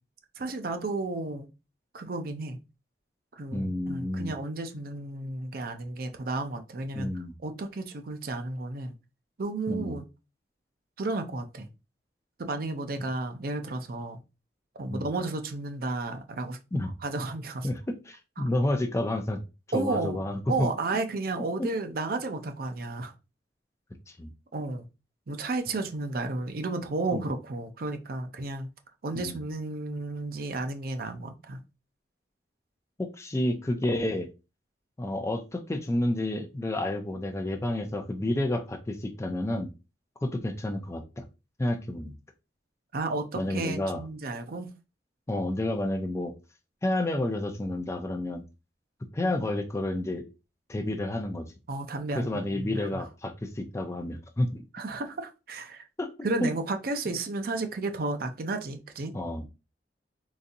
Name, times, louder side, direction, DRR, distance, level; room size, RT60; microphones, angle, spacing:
voice 1, 0.4-1.5 1.9-2.6 3.3-8.9 9.4-10.0 11.0-11.7 12.4-14.2 14.8-16.6 17.0-17.7 18.4-18.5 19.7-20.2 20.5-23.1 24.5-24.9 25.3-28.7 29.0-31.6 42.9-44.7 51.7-53.0 54.7-55.9 56.2-59.1, right 2 dB, 55° right, 0.5 m, -32 dB
voice 2, 3.5-4.3 6.9-7.3 9.7-9.9 14.9-15.1 16.7-16.9 17.6-19.4 19.7-20.7 21.6-21.7 24.1-24.3 27.1-27.2 29.1-29.4 33.0-34.3 35.0-39.7 40.2-41.2 41.6-42.1 43.3-44.0 45.3-46.3 46.8-48.4 49.1-50.2 50.7-51.5 52.1-54.6 56.0-56.1 56.4-56.5 59.1-59.4, left 1 dB, 15° left, 0.4 m, -30 dB
4.0 x 2.6 x 2.6 m
head